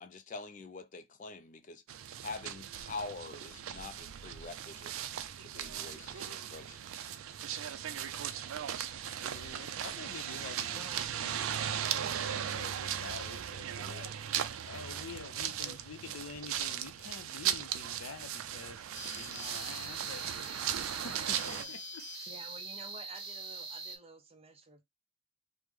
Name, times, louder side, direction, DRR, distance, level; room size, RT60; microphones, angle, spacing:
voice 1, 0.0-1.8 2.2-4.9 5.4-7.1, left 3 dB, 35° left, 0.3 m, -45 dB
sound 1, 1.9-21.6, right 9 dB, 80° right, 0.4 m, -38 dB
voice 2, 9.2-14.1 14.6-18.8 19.2-20.6 21.0-22.1, left 4 dB, 85° left, 0.6 m, -48 dB
voice 3, 15.4-15.8 21.5-21.7 22.3-24.8, right 3 dB, 25° right, 0.5 m, -52 dB
sound 2, 18.9-24.0, right 2 dB, 50° right, 1.0 m, -43 dB
3.1 x 2.1 x 3.4 m
head